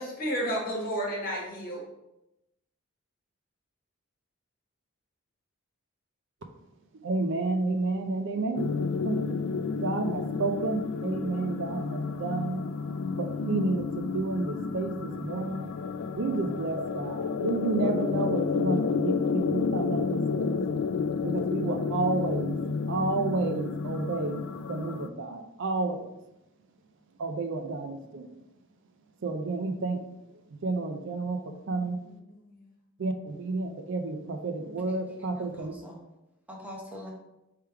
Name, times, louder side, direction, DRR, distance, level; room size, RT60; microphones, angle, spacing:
voice 1, 0.0-1.8 32.0-32.4, equal, 45° left, -3 dB, 1.5 m, -32 dB
voice 2, 7.0-8.7 9.0-9.2 9.8-12.6 13.2-15.7 16.2-20.6 21.2-22.6 22.9-24.4 24.7-26.0 27.2-28.3 29.2-30.0 30.6-31.4 31.7-32.0 33.0-35.7, right 3 dB, 60° right, 6 dB, 0.5 m, -30 dB
sound 1, 8.6-25.1, left 5 dB, 70° left, 0.3 m, -30 dB
voice 3, 34.6-36.0 36.5-37.1, left 1 dB, 10° right, -3 dB, 0.8 m, -45 dB
3.4 x 3.3 x 4.5 m, 0.90 s
head